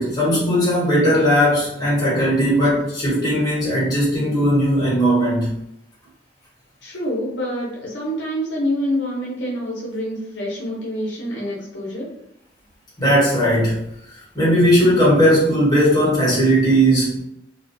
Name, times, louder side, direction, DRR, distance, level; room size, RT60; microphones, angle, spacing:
voice 1, 0.0-5.5 13.0-17.2, equal, 20° left, -7 dB, 1.2 m, -18 dB
voice 2, 6.8-12.1, equal, 75° left, -4 dB, 0.8 m, -26 dB
2.4 x 2.2 x 2.6 m, 0.77 s
head